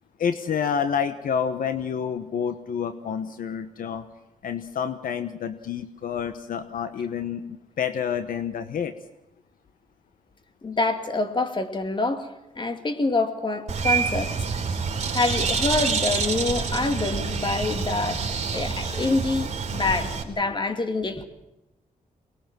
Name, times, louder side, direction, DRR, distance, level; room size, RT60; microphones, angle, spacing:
voice 1, 0.2-4.0 4.4-8.9, left 7 dB, 80° left, 11 dB, 1.1 m, -28 dB
voice 2, 10.6-12.3 12.6-14.3 15.1-18.2 18.5-21.2, left 3 dB, 35° left, 8 dB, 2.5 m, -26 dB
Bird, 13.7-20.2, right 5 dB, 55° right, 3.8 m, -27 dB
23.0 x 20.0 x 7.6 m, 0.94 s
cardioid pair, 95°, 14 cm